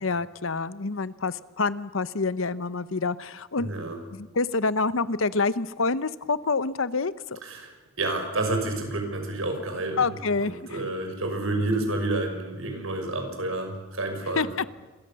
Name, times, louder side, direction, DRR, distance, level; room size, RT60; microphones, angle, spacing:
voice 1, 0.0-3.7 4.1-7.4 10.0-10.8 14.4-14.5, left 4 dB, 75° left, 15 dB, 0.9 m, -27 dB
voice 2, 3.6-4.0 7.4-7.7 8.0-10.1 10.4-14.5, right 2 dB, 80° right, 4 dB, 6.0 m, -29 dB
27.5 x 22.0 x 7.0 m, 1.2 s
head